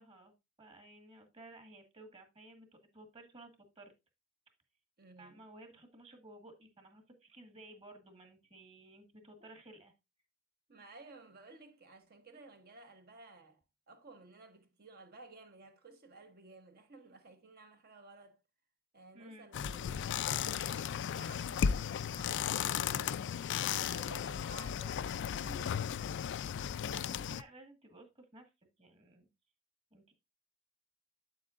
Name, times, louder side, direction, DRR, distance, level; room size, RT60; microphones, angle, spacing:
voice 1, 0.0-3.9 5.2-9.9 19.1-19.5 26.8-28.5 28.8-29.3 29.9-30.1, right 1 dB, 30° right, 1.8 m, -56 dB
voice 2, 5.0-5.4 10.7-18.4 18.9-23.4 23.7-26.0, right 3 dB, 45° right, 1.1 m, -55 dB
sound 1, 19.5-27.4, left 8 dB, 55° left, 0.4 m, -35 dB
8.3 x 7.8 x 2.5 m
head